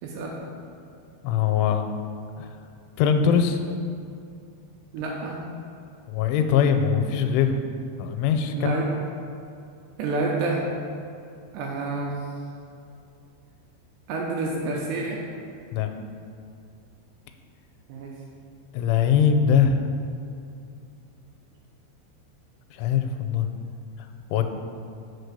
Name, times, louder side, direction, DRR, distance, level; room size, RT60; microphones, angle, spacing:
voice 1, 0.0-0.4 4.9-5.4 8.5-9.0 10.0-10.7 11.5-12.2 14.1-15.2 17.9-18.1, right 3 dB, 80° right, -2 dB, 2.6 m, -28 dB
voice 2, 1.2-1.9 2.4-2.6 3.0-3.6 6.1-7.6 8.0-8.8 15.7-15.9 18.7-19.8 22.7-23.5 24.3-24.5, left 7 dB, 85° left, 6 dB, 3.0 m, -21 dB
6.7 x 4.6 x 6.6 m, 2.6 s
omnidirectional pair, 5.4 m